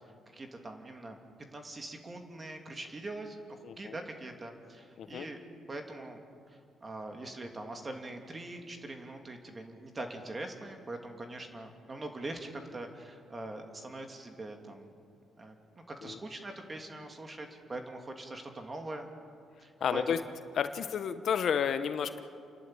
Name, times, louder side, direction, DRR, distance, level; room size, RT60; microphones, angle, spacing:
voice 1, 0.3-1.2 1.5-5.4 5.7-6.2 6.5-14.9 15.4-15.5 15.9-19.1 19.6-20.2 20.8-20.9, right 2 dB, 30° right, 4 dB, 2.9 m, -43 dB
voice 2, 3.6-4.0 5.0-5.3 16.0-16.2 19.8-20.2 20.5-22.2, left 8 dB, 65° left, 10 dB, 1.0 m, -31 dB
29.0 x 11.5 x 9.1 m, 2.3 s
cardioid pair, 90°, 0 cm